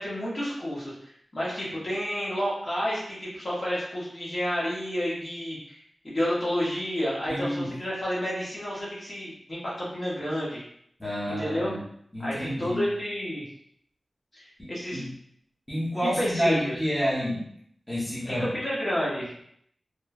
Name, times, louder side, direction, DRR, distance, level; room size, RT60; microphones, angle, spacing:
voice 1, 0.0-10.6 11.3-11.7 12.2-13.4 14.3-15.0 16.0-16.7 18.2-19.4, equal, 40° left, -7 dB, 1.0 m, -30 dB
voice 2, 7.3-7.7 11.0-11.8 12.1-12.8 14.6-15.1 15.7-17.4 17.9-18.5, equal, 5° left, -9 dB, 0.9 m, -29 dB
3.1 x 2.0 x 2.3 m, 0.69 s
wide cardioid pair, 90°, 0 cm